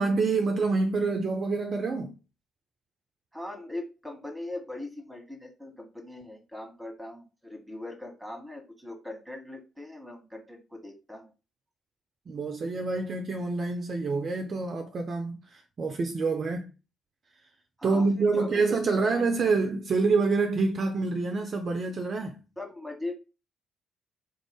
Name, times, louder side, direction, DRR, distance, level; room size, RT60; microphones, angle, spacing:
voice 1, 0.0-2.1 12.3-16.7 17.8-22.4, right 3 dB, 45° right, 0.4 m, -27 dB
voice 2, 3.3-11.3 17.8-18.6 19.0-19.1 22.6-23.1, left 2 dB, 5° right, 1.3 m, -40 dB
3.5 x 2.6 x 3.3 m
figure-of-eight pair, 45°, 0 cm